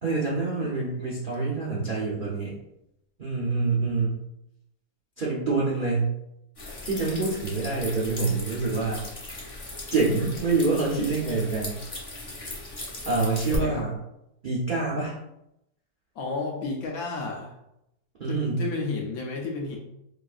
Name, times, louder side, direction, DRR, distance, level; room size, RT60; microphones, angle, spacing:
voice 1, 0.0-2.5 3.2-4.2 5.2-6.1 6.8-9.0 9.9-11.8 13.1-13.9 14.4-15.1 18.2-18.7, right 3 dB, 75° right, -5 dB, 0.4 m, -26 dB
sound 1, 6.6-13.6, left 2 dB, 35° left, 0.5 m, -38 dB
voice 2, 13.5-13.8 16.2-17.5 18.3-19.8, left 3 dB, 70° left, 0 dB, 0.9 m, -32 dB
4.6 x 2.5 x 2.4 m, 0.84 s
omnidirectional pair, 1.9 m